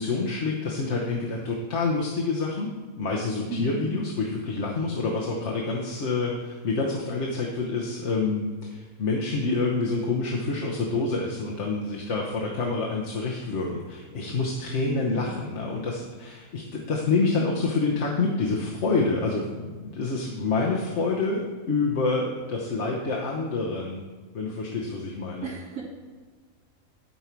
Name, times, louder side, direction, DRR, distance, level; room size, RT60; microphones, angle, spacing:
voice 1, 0.0-2.7 3.0-24.0 24.3-25.5, left 3 dB, 55° left, -2 dB, 1.3 m, -27 dB
voice 2, 3.5-3.9 14.9-15.3 25.4-25.8, right 5 dB, 85° right, -5 dB, 2.6 m, -33 dB
12.5 x 5.5 x 4.6 m, 1.4 s
omnidirectional pair, 1.5 m